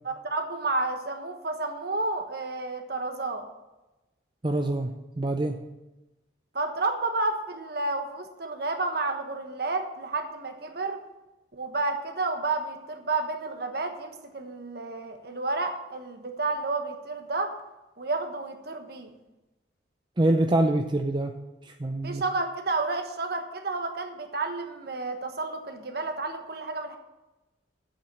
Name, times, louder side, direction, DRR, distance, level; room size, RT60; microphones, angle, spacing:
voice 1, 0.0-3.4 6.5-11.0 11.5-17.5 18.0-19.2 22.0-27.0, right 3 dB, 55° right, 5 dB, 1.3 m, -31 dB
voice 2, 4.4-4.9 5.2-5.6 20.2-21.3 21.7-22.2, right 1 dB, 25° right, 4 dB, 0.5 m, -25 dB
7.9 x 7.2 x 8.4 m, 1.0 s
head